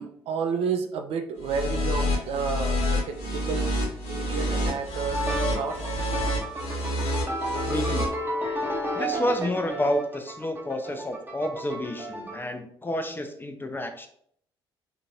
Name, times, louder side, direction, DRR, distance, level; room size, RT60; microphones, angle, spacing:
voice 1, 0.0-3.8 4.1-5.9, right 5 dB, 50° right, 6 dB, 0.4 m, -31 dB
sound 1, 1.4-8.0, equal, 55° left, 0.9 m, -28 dB
sound 2, 5.1-12.4, equal, 15° right, 0.8 m, -32 dB
voice 2, 7.7-8.1 8.9-14.1, left 1 dB, 15° left, 7 dB, 0.4 m, -29 dB
3.6 x 2.5 x 2.7 m, 0.65 s
figure-of-eight pair, 45°, 13 cm